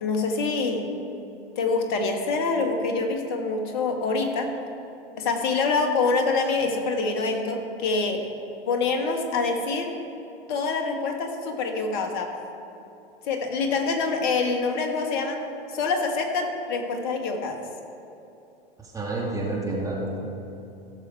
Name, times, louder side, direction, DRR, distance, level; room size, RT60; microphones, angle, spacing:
voice 1, 0.0-0.9 1.6-4.5 5.2-8.3 8.7-9.9 10.5-12.3 13.2-15.4 15.7-17.6, left 4 dB, 50° left, 4 dB, 1.8 m, -25 dB
voice 2, 18.9-20.3, right 2 dB, 10° right, -3 dB, 2.4 m, -29 dB
17.0 x 6.7 x 4.7 m, 2.8 s
hypercardioid pair, 100°, 30 cm